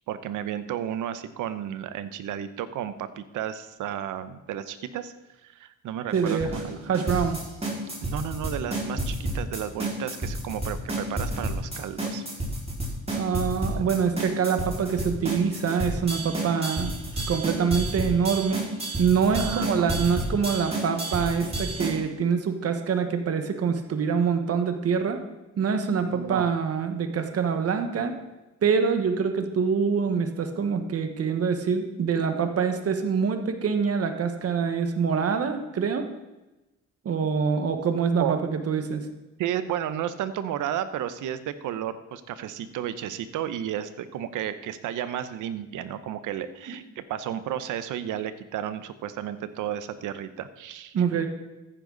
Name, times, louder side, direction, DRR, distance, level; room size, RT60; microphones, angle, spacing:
voice 1, 0.1-5.1 5.4-6.8 8.0-12.2 13.7-13.8 19.3-19.9 26.1-26.5 38.2-38.4 39.4-51.0, right 10 dB, 85° right, 13 dB, 0.9 m, -33 dB
sound 1, 6.1-22.0, right 1 dB, 20° right, 4.8 m, -30 dB
voice 2, 6.1-6.5 6.9-7.4 13.1-18.7 19.0-25.2 25.6-28.1 28.6-36.0 37.0-39.0 46.7-46.8 50.9-51.3, right 6 dB, 55° right, 7 dB, 1.4 m, -25 dB
14.0 x 10.0 x 4.0 m, 1.0 s
cardioid pair, 90°, 30 cm